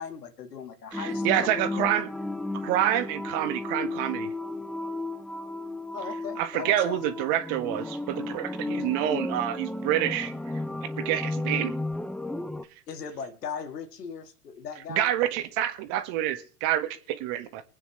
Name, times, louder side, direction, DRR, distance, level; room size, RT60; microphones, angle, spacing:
voice 1, 0.0-1.9 5.9-7.4 12.9-15.1, left 6 dB, 90° left, 2.1 m, -38 dB
sound 1, 0.9-12.6, left 2 dB, ahead, 0.5 m, -34 dB
voice 2, 0.9-2.1 2.6-4.3 6.4-10.3 10.8-11.7 14.9-17.6, right 12 dB, 55° right, 1.7 m, -27 dB
24.0 x 9.2 x 3.3 m
hypercardioid pair, 100°, 46 cm